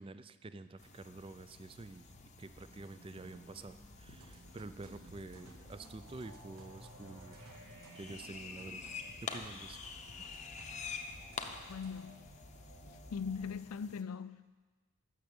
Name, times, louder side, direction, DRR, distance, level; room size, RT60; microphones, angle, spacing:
voice 1, 0.0-2.1 2.4-7.5 8.0-9.8 10.2-10.3, right 2 dB, 25° right, 0.4 m, -49 dB
sound 1, 0.6-13.5, equal, 65° right, 2.8 m, -56 dB
sound 2, 0.8-14.0, left 5 dB, 30° left, 0.7 m, -49 dB
sound 3, 4.1-12.0, right 2 dB, 80° right, 1.3 m, -59 dB
voice 2, 11.7-12.2 13.1-14.7, left 6 dB, 85° left, 0.4 m, -40 dB
13.0 x 6.3 x 8.7 m
head